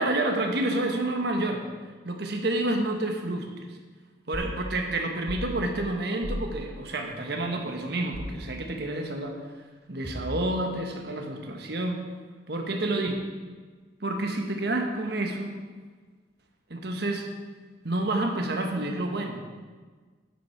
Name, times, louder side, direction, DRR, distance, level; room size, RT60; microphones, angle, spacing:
voice 1, 0.0-1.6 2.0-3.7 4.3-9.4 9.9-12.0 12.5-13.2 14.0-15.5 16.7-17.3 17.8-19.4, right 2 dB, 60° right, 3 dB, 1.3 m, -29 dB
sound 1, 4.3-4.6 5.3-5.5 6.2-6.5 8.1-8.4 10.0-10.6, equal, 15° left, 1.2 m, -35 dB
10.0 x 7.5 x 4.5 m, 1.5 s
head